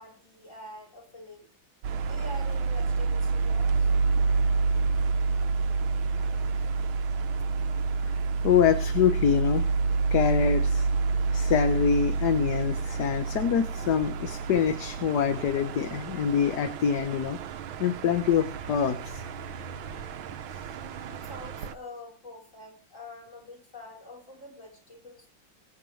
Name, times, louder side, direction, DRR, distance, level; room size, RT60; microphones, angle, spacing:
voice 1, 0.0-1.5 2.0-3.9 6.2-6.3 6.6-6.7 21.0-25.3, left 1 dB, 40° left, -2 dB, 5.9 m, -46 dB
sound 1, 1.8-21.7, right 4 dB, 85° right, 1.7 m, -28 dB
voice 2, 8.4-9.6 10.1-10.9 11.3-17.4 17.8-19.2, left 8 dB, 60° left, 7 dB, 1.5 m, -25 dB
23.5 x 8.7 x 3.2 m, 0.40 s
omnidirectional pair, 2.1 m